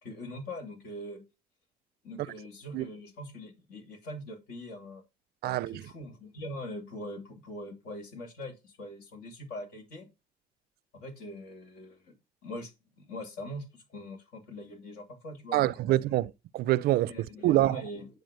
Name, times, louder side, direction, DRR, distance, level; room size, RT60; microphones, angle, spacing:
voice 1, 0.0-1.2 2.0-5.0 5.4-10.1 10.9-12.1 12.4-12.7 13.0-15.8 17.1-18.1, left 1 dB, 80° left, 2.8 m, -42 dB
voice 2, 5.4-5.8 15.5-17.1 17.4-17.8, right 15 dB, 65° right, 0.4 m, -26 dB
9.4 x 4.8 x 5.0 m
cardioid pair, 110°, 17 cm